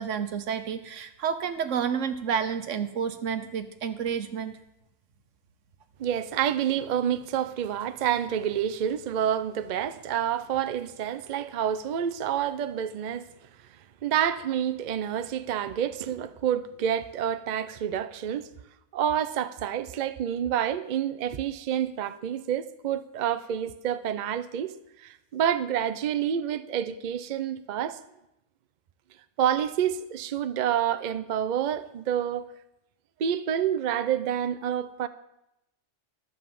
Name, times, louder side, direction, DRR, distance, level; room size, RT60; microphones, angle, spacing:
voice 1, 0.0-4.6, right 7 dB, 85° right, 1.2 m, -30 dB
voice 2, 6.0-13.3 14.0-18.5 18.9-24.7 25.0-28.0 29.4-32.5 33.2-35.1, right 9 dB, 55° right, 0.5 m, -28 dB
12.0 x 5.3 x 7.6 m
omnidirectional pair, 1.3 m